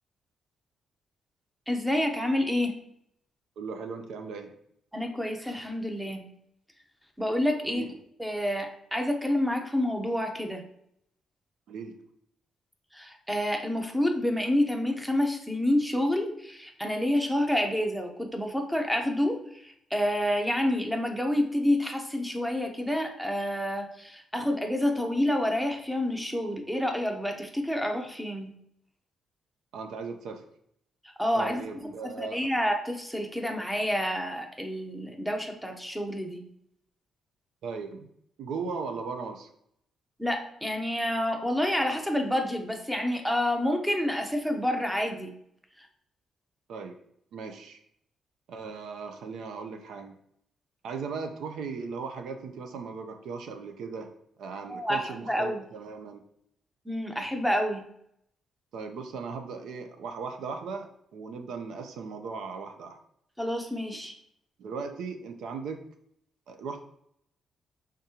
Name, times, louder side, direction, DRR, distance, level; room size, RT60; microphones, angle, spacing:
voice 1, 1.7-2.7 4.9-6.2 7.2-7.9 8.2-10.6 12.9-28.5 31.2-36.4 40.2-45.3 54.7-55.6 56.9-57.8 63.4-64.2, left 1 dB, 5° right, 4 dB, 0.7 m, -28 dB
voice 2, 3.6-4.5 7.7-7.9 11.7-12.0 29.7-30.4 31.3-32.5 37.6-38.1 38.4-39.5 46.7-47.0 47.3-47.8 48.5-50.2 50.8-54.1 54.4-56.2 58.7-63.0 64.6-65.8 66.5-66.8, right 5 dB, 80° right, 6 dB, 0.6 m, -37 dB
5.1 x 3.6 x 2.8 m, 0.71 s
cardioid pair, 120°, 0 cm